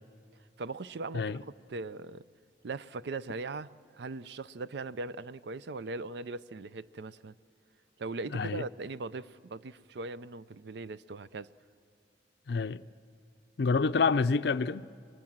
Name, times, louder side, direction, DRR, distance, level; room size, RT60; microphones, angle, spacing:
voice 1, 0.6-1.4 1.7-2.2 2.6-7.3 8.0-11.5, right 3 dB, 65° right, 0.5 m, -39 dB
voice 2, 8.3-8.6 12.5-12.8 13.6-14.9, left 4 dB, 60° left, 0.5 m, -27 dB
26.0 x 21.5 x 7.3 m
head